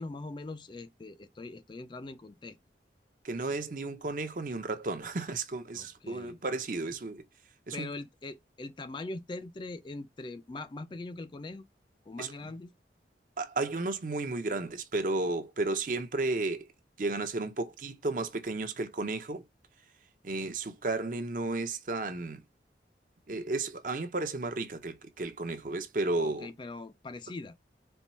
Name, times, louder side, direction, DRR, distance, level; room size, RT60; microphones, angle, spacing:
voice 1, 0.0-2.6 5.7-6.4 6.9-7.0 7.7-11.7 12.0-12.7 26.2-27.6, left 2 dB, 25° left, 0.3 m, -42 dB
voice 2, 3.2-7.2 7.7-7.9 12.2-12.3 13.4-16.7 17.0-19.4 20.2-22.4 23.3-26.5, right 2 dB, 45° right, 0.6 m, -33 dB
4.4 x 2.2 x 4.1 m
head